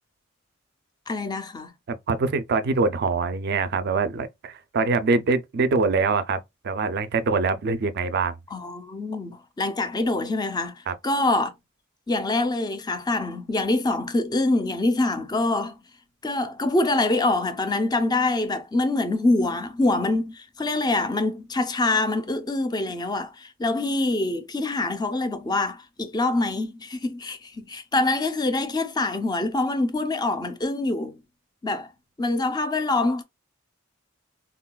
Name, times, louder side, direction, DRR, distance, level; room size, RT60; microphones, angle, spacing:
voice 1, 1.1-1.7 8.5-11.5 12.1-15.8 16.2-31.1 31.6-31.9 32.2-33.2, left 2 dB, 20° left, 0.5 m, -25 dB
voice 2, 1.9-6.4 6.6-8.4 10.9-11.0, right 4 dB, 50° right, 0.4 m, -24 dB
3.7 x 2.2 x 2.2 m
head